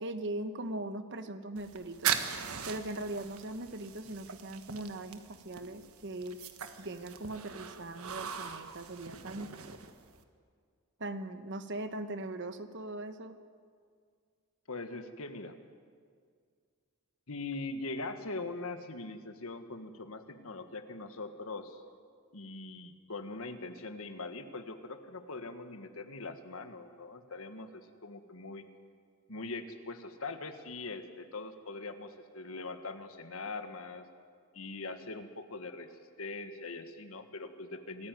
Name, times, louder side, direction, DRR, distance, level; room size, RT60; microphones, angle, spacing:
voice 1, 0.0-2.1 2.7-6.4 6.8-9.5 11.0-13.3, right 1 dB, 55° right, 10 dB, 1.2 m, -40 dB
sound 1, 1.6-10.2, right 8 dB, 75° right, 1.4 m, -40 dB
voice 2, 14.7-15.6 17.3-21.8 22.3-28.7 29.3-34.0 34.5-35.9 36.2-38.1, left 3 dB, 65° left, 8 dB, 1.6 m, -42 dB
25.5 x 14.5 x 9.2 m, 2.1 s
head